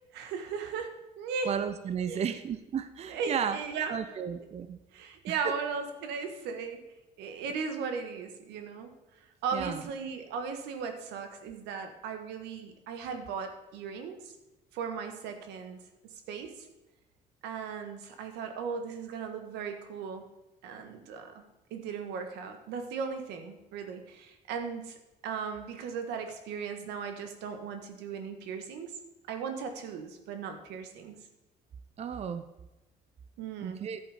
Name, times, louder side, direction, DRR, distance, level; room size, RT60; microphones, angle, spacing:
voice 1, 0.1-1.5 2.1-2.2 3.1-3.9 4.9-6.8 7.2-8.9 9.4-14.3 14.7-15.8 16.3-16.7 17.4-20.2 20.6-21.4 21.7-25.0 25.2-28.9 29.3-31.2 33.4-33.8, right 6 dB, 90° right, 6 dB, 1.5 m, -37 dB
voice 2, 1.5-3.6 3.9-4.8 5.4-5.6 9.5-9.8 32.0-32.4 33.6-34.0, right 7 dB, 40° right, 10 dB, 0.7 m, -33 dB
11.0 x 8.0 x 5.0 m, 1.0 s
cardioid pair, 110°, 17 cm